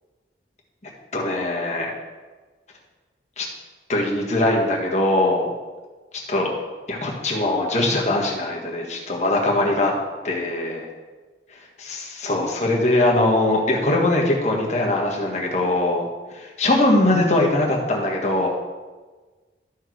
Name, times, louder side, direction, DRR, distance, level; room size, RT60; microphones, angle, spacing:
voice 1, 1.1-1.9 3.4-3.5 3.9-5.5 6.3-6.5 6.9-9.9 10.2-10.9 11.8-16.0 16.3-18.5, left 2 dB, 40° left, -1 dB, 1.6 m, -21 dB
13.0 x 4.5 x 4.7 m, 1.3 s
head